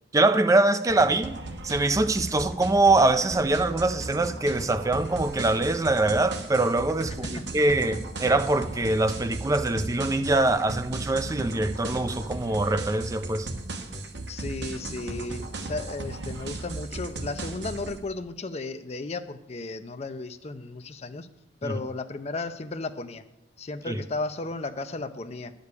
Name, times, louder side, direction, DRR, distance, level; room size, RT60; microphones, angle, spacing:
voice 1, 0.1-1.4 1.6-13.5 21.6-21.7 23.9-24.0, right 2 dB, 20° right, 0.5 m, -23 dB
sound 1, 0.9-18.0, right 2 dB, 80° right, 1.2 m, -36 dB
voice 2, 14.3-21.3 21.6-23.2 23.6-25.5, left 3 dB, 35° left, 0.5 m, -34 dB
10.5 x 5.2 x 8.2 m
head